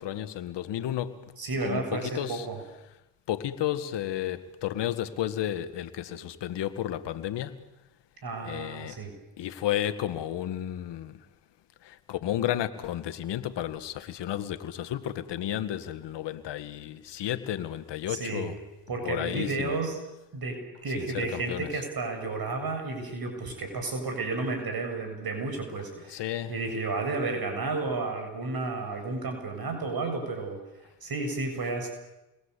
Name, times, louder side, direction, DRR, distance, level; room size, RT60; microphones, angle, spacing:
voice 1, 0.0-1.2 1.6-2.5 3.3-7.6 8.4-8.9 9.4-11.1 11.8-18.6 19.0-19.8 21.0-21.7 26.1-26.5, left 11 dB, 80° left, 1.9 m, -32 dB
voice 2, 1.4-2.6 8.2-9.2 18.1-18.5 18.9-20.0 20.3-30.6 31.0-31.9, right 3 dB, 60° right, 7.8 m, -32 dB
29.5 x 23.0 x 8.4 m
supercardioid pair, 55°, 41 cm